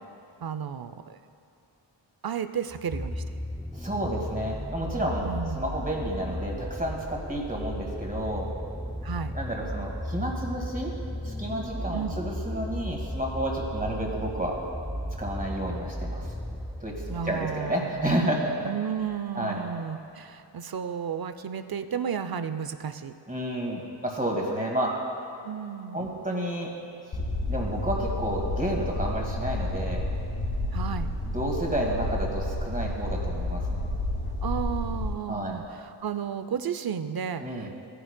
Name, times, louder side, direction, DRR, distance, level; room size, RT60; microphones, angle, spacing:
voice 1, 0.4-1.2 2.2-3.2 5.2-5.6 9.0-9.3 11.9-12.2 17.1-17.9 18.6-23.1 25.4-26.2 30.7-31.1 34.4-37.7, right 7 dB, 50° right, 11 dB, 0.5 m, -33 dB
sound 1, 2.7-18.3 19.1-19.2, equal, ahead, 0.4 m, -35 dB
voice 2, 3.7-5.3 5.5-8.5 9.3-10.9 11.2-14.6 15.2-16.3 16.8-18.7 19.4-19.6 23.3-25.0 25.9-26.7 27.0-27.2 27.5-30.0 31.2-33.8 35.3-35.6 37.4-37.7, right 1 dB, 20° right, -1 dB, 1.9 m, -30 dB
sound 2, 27.1-35.1, left 1 dB, 55° left, 1.5 m, -30 dB
15.0 x 9.9 x 2.2 m, 2.8 s
wide cardioid pair, 70°, 46 cm